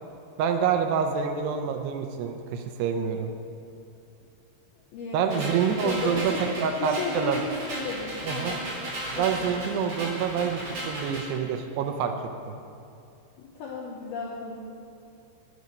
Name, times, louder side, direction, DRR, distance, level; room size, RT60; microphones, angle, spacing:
voice 1, 0.4-3.3 5.1-6.3 6.6-7.4 8.3-8.6 9.1-10.6 10.9-12.1 12.5-12.6, right 7 dB, 85° right, 5 dB, 2.3 m, -27 dB
voice 2, 4.9-6.4 6.8-7.4 7.7-8.7 9.1-9.5 13.4-14.6, left 4 dB, 75° left, -3 dB, 2.3 m, -34 dB
sound 1, 5.3-11.3, right 1 dB, 40° right, 3.2 m, -35 dB
10.5 x 9.6 x 5.2 m, 2.6 s
omnidirectional pair, 5.5 m